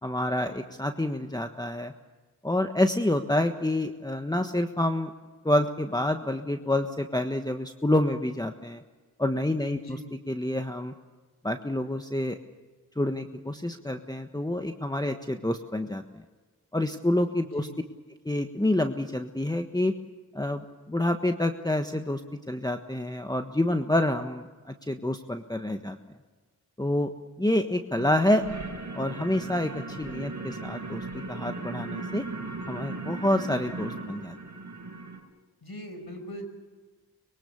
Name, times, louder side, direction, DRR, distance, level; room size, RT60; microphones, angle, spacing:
voice 1, 0.0-1.9 2.4-5.1 5.4-8.8 9.2-10.9 11.4-12.4 13.0-16.0 16.7-17.7 18.2-19.9 20.3-26.0 26.8-27.1 27.4-28.4 28.9-32.2 32.7-34.3, left 1 dB, 10° left, 6 dB, 1.4 m, -28 dB
voice 2, 9.7-10.1 17.5-17.8 35.6-36.4, equal, 70° left, 7 dB, 5.7 m, -41 dB
sound 1, 28.0-35.2, right 3 dB, 50° right, 6.2 m, -37 dB
25.0 x 22.5 x 7.0 m, 1.4 s
cardioid pair, 50°, 39 cm